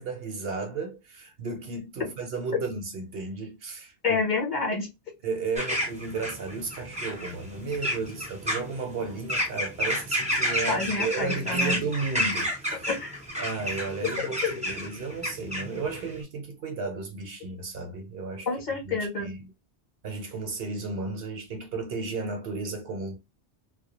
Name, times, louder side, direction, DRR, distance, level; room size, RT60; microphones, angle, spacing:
voice 1, 0.0-4.2 5.2-12.9 13.4-18.5 18.8-19.5 20.0-23.2, right 4 dB, 60° right, 0.8 m, -34 dB
voice 2, 4.0-4.9 10.7-11.8 12.9-13.1 14.4-14.6 18.5-19.3, left 3 dB, 45° left, 0.9 m, -28 dB
sound 1, 5.5-16.2, equal, 10° right, 0.4 m, -31 dB
2.2 x 2.2 x 2.8 m
omnidirectional pair, 1.2 m